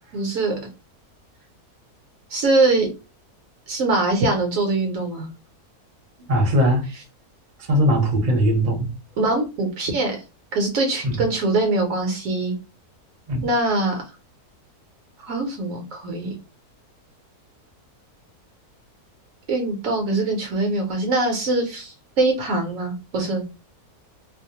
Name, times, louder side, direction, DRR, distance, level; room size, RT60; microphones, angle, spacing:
voice 1, 0.1-0.6 2.3-2.9 3.7-5.3 6.8-7.0 9.2-10.2 10.5-12.5 13.4-14.0 15.2-16.3 19.5-23.4, right 2 dB, 65° right, 1.0 m, -23 dB
voice 2, 6.3-6.8 7.7-8.9 11.0-11.2 13.3-13.5, equal, 40° right, 0.7 m, -19 dB
2.6 x 2.0 x 2.8 m
omnidirectional pair, 1.6 m